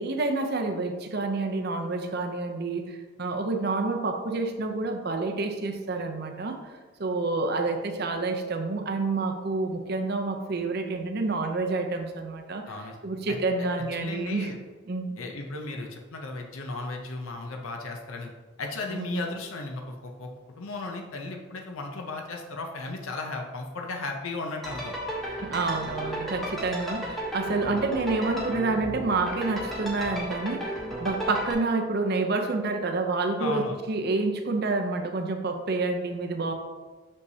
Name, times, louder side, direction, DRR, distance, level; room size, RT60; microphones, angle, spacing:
voice 1, 0.0-6.6 7.0-12.6 13.0-14.5 14.9-15.1 18.9-19.2 25.3-36.5, right 3 dB, 50° right, 4 dB, 0.6 m, -28 dB
voice 2, 12.7-13.0 13.3-13.4 14.0-14.6 15.2-18.3 18.6-24.9 33.4-33.8, left 3 dB, 75° left, 2 dB, 0.6 m, -35 dB
sound 1, 24.6-31.5, equal, ahead, 1.0 m, -34 dB
6.4 x 5.4 x 2.8 m, 1.3 s
head